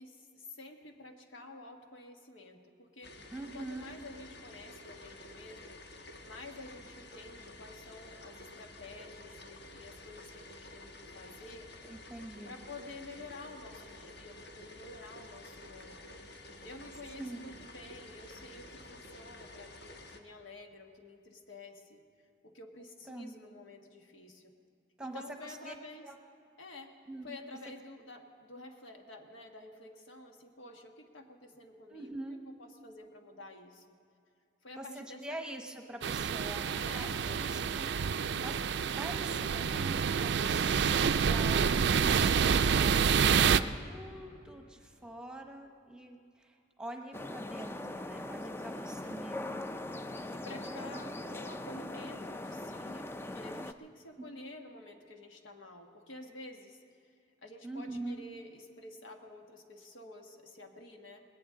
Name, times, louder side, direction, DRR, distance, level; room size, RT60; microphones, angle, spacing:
voice 1, 0.0-3.3 3.5-5.8 6.2-11.7 12.4-16.0 16.6-22.0 22.4-24.5 25.0-26.1 26.6-26.9 27.2-34.0 34.6-35.4 36.7-37.2 48.6-49.0 50.3-56.8 57.4-61.2, left 2 dB, 85° left, 4 dB, 1.4 m, -50 dB
sound 1, 3.0-20.2, left 2 dB, 60° left, 1.2 m, -51 dB
voice 2, 3.3-3.9 11.9-12.5 17.2-17.4 23.1-23.3 25.0-25.7 26.0-26.2 27.1-27.4 31.9-32.4 34.8-38.6 38.9-40.9 41.3-49.8 50.6-51.3 57.6-58.2, right 1 dB, 5° right, 3 dB, 1.0 m, -45 dB
sound 2, 36.0-43.6, right 6 dB, 60° right, 0.4 m, -28 dB
sound 3, 47.1-53.7, left 1 dB, 10° left, 0.3 m, -41 dB
20.0 x 17.5 x 3.7 m, 2.5 s
head